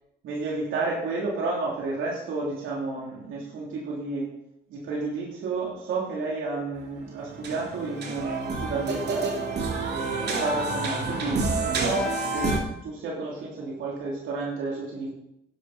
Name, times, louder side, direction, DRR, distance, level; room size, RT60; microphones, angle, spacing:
voice 1, 0.2-4.3 4.7-9.3 9.8-12.5 12.8-15.1, right 3 dB, 80° right, -4 dB, 3.2 m, -31 dB
sound 1, 6.8-6.9 7.1-12.6, right 3 dB, 60° right, 2.8 m, -28 dB
11.5 x 10.5 x 4.2 m, 0.82 s
cardioid pair, 90°, 20 cm